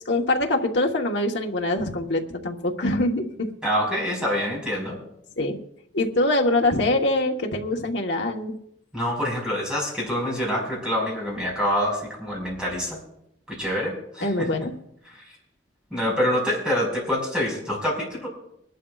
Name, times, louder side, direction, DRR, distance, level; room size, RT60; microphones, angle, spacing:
voice 1, 0.1-3.5 5.4-5.6 5.9-8.5 14.2-14.7, left 2 dB, 65° left, 2 dB, 1.3 m, -24 dB
voice 2, 3.6-5.0 8.9-13.0 13.5-14.5 15.1-15.2 15.9-18.3, equal, 5° right, -3 dB, 5.2 m, -26 dB
23.5 x 12.0 x 2.4 m, 0.74 s
head